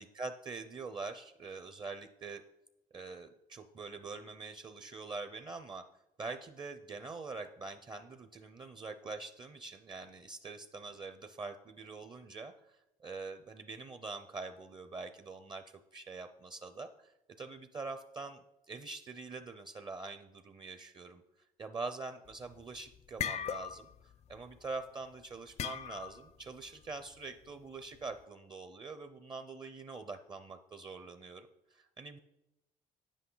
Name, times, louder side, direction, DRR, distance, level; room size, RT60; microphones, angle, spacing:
voice 1, 0.0-2.4 2.9-5.8 6.2-17.1 17.4-21.2 21.6-23.9 24.3-32.2, right 3 dB, 25° right, 9 dB, 0.5 m, -44 dB
sound 1, 22.3-22.6 22.9-24.0 24.3-24.6 25.6-26.3, left 9 dB, 40° left, 0.4 m, -38 dB
9.5 x 8.3 x 3.8 m, 0.88 s
cardioid pair, 110°, 17 cm